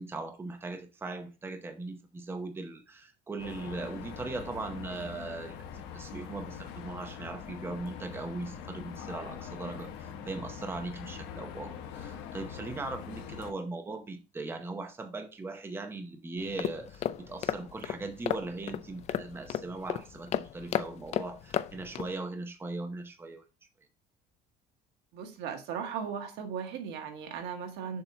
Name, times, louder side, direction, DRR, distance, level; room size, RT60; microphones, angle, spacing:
voice 1, 0.0-23.5, right 3 dB, 15° right, 0.7 m, -39 dB
sound 1, 3.4-13.5, left 7 dB, 90° left, 1.1 m, -43 dB
sound 2, 16.4-22.1, left 11 dB, 40° left, 0.4 m, -34 dB
voice 2, 25.1-28.0, right 7 dB, 85° right, 1.5 m, -37 dB
7.0 x 2.8 x 5.7 m
cardioid pair, 155°, 17 cm